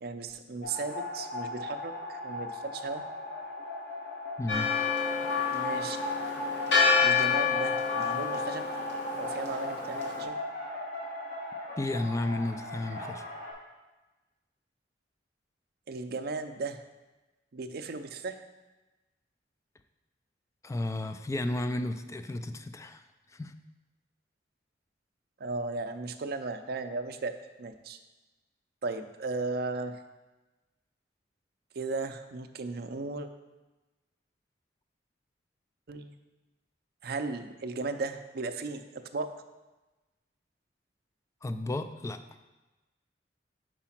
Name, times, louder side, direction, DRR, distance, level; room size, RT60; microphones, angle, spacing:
voice 1, 0.0-3.0 5.5-6.0 7.0-8.7 9.2-10.4 15.9-16.8 17.5-18.4 25.4-27.3 27.6-28.0 28.8-30.0 31.8-33.3 35.9-36.1 37.0-38.8 39.1-39.3, right 3 dB, 60° right, 8 dB, 0.5 m, -36 dB
sound 1, 0.6-13.5, left 2 dB, 60° left, 2.4 m, -37 dB
voice 2, 4.4-4.7 11.8-13.2 20.6-23.0 23.3-23.5 41.4-42.2, left 1 dB, 15° left, 8 dB, 0.3 m, -33 dB
Church bell, 4.5-10.2, left 5 dB, 80° left, 1.5 m, -28 dB
4.9 x 4.8 x 5.8 m, 1.1 s
head